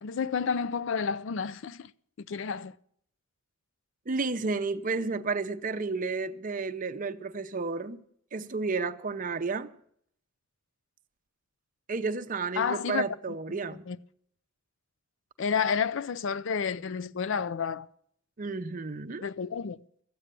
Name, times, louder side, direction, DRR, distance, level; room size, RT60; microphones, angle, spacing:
voice 1, 0.0-1.9 2.2-2.7 12.6-13.1 13.5-13.6 13.9-14.0 15.4-17.9 19.2-19.8, left 6 dB, 60° left, 0.4 m, -30 dB
voice 2, 4.1-8.0 8.3-9.7 11.9-13.8 18.4-19.3, right 4 dB, 40° right, 0.6 m, -32 dB
14.5 x 8.8 x 6.7 m
head